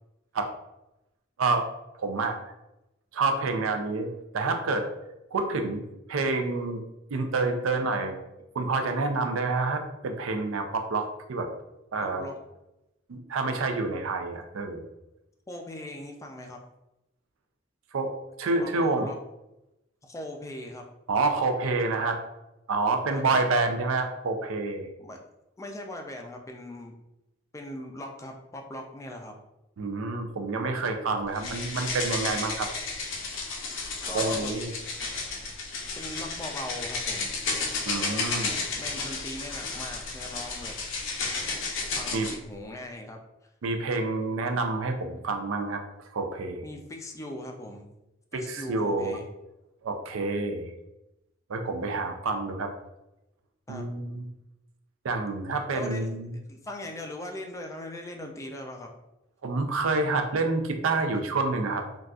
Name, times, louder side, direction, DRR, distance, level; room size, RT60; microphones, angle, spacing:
voice 1, 2.0-2.4 3.1-4.9 5.3-5.8 6.1-6.8 7.1-8.1 8.5-11.5 11.9-12.3 13.1-14.9 17.9-19.1 21.1-22.2 22.7-24.9 29.8-32.7 34.1-34.7 37.9-38.6 42.1-42.3 43.6-45.8 46.1-46.6 48.3-49.2 49.8-50.7 51.5-52.7 53.7-54.3 55.0-56.3 59.4-61.8, right 3 dB, 85° right, 5 dB, 0.4 m, -28 dB
voice 2, 12.0-12.4 15.5-16.6 18.6-19.2 20.0-20.8 23.1-23.2 25.0-25.2 25.6-26.9 27.5-29.3 31.7-31.8 34.0-34.5 35.9-37.3 38.7-40.8 41.9-43.2 46.6-47.9 48.3-49.3 53.7-53.9 55.7-56.1 56.5-58.9, left 1 dB, 15° left, 2 dB, 0.3 m, -39 dB
sound 1, 31.3-42.4, left 4 dB, 70° left, 0.6 m, -32 dB
3.9 x 2.3 x 2.3 m, 0.92 s
head